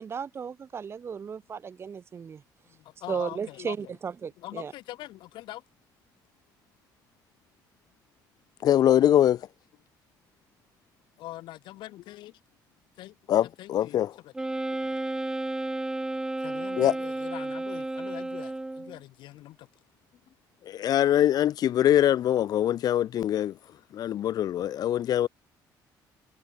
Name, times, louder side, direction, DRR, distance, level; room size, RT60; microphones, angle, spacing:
voice 1, 0.0-2.4 3.1-4.7, right 6 dB, 30° right, 0.9 m, -35 dB
voice 2, 2.7-3.9 4.4-5.6 11.2-12.4 13.0-13.2 13.4-14.3 14.7-15.0 16.4-19.7, left 16 dB, 80° left, 1.8 m, -43 dB
voice 3, 8.6-9.5 13.3-14.1 16.8-17.0 20.7-23.6 23.9-25.3, left 11 dB, 55° left, 0.8 m, -23 dB
Wind instrument woodwind instrument, 14.3-19.0, right 2 dB, 10° right, 0.4 m, -32 dB
cardioid pair, 130°, 8 cm